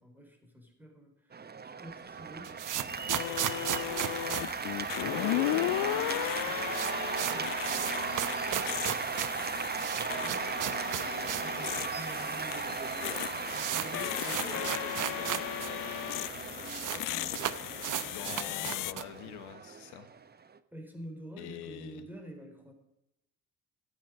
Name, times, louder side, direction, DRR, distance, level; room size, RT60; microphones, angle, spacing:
voice 1, 0.0-2.7 3.1-4.0 5.0-10.6 10.9-15.9 16.9-18.7 20.7-22.7, right 1 dB, 5° right, 3 dB, 4.3 m, -49 dB
Cheering / Applause, 1.3-20.6, right 5 dB, 25° right, 0.9 m, -37 dB
sound 1, 2.2-5.4 5.7-5.8 6.0-6.1 6.4-11.6 11.9-12.0 12.7-12.8 13.0-15.7 16.0-16.1 16.3-17.0 17.3-19.2, right 11 dB, 50° right, 0.9 m, -35 dB
sound 2, 2.9-18.9, left 17 dB, 55° left, 0.5 m, -36 dB
voice 2, 18.1-20.1 21.4-22.0, left 11 dB, 80° left, 9 dB, 1.5 m, -44 dB
13.5 x 9.3 x 5.2 m, 0.82 s
hypercardioid pair, 60°, 39 cm